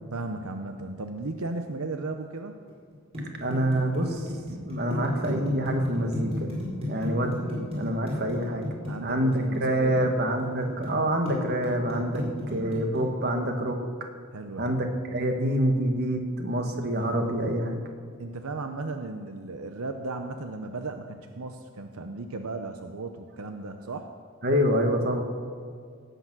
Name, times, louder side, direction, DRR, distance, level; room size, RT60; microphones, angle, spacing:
voice 1, 0.1-2.5 6.9-7.2 7.4-7.7 8.9-10.2 14.3-14.8 18.2-24.1, right 3 dB, 85° right, 6 dB, 0.8 m, -36 dB
sound 1, 2.7-10.9 11.3-13.0, left 1 dB, 30° right, 4.6 m, -33 dB
voice 2, 3.4-4.2 4.6-6.5 6.9-7.4 7.7-8.7 9.0-13.8 14.6-17.8 24.4-25.2, right 1 dB, 50° right, 4 dB, 1.6 m, -26 dB
17.5 x 8.3 x 6.2 m, 2.1 s
head